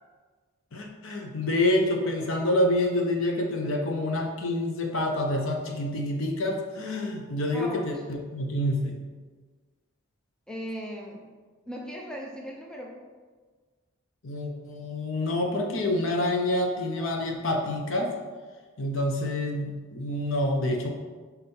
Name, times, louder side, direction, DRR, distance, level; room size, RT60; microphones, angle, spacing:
voice 1, 0.7-8.9 14.2-18.1 18.8-20.9, left 1 dB, 65° left, 2 dB, 0.8 m, -27 dB
voice 2, 7.5-7.9 10.5-11.3 11.7-12.9, equal, 5° left, -1 dB, 0.5 m, -37 dB
4.4 x 4.1 x 5.4 m, 1.4 s
head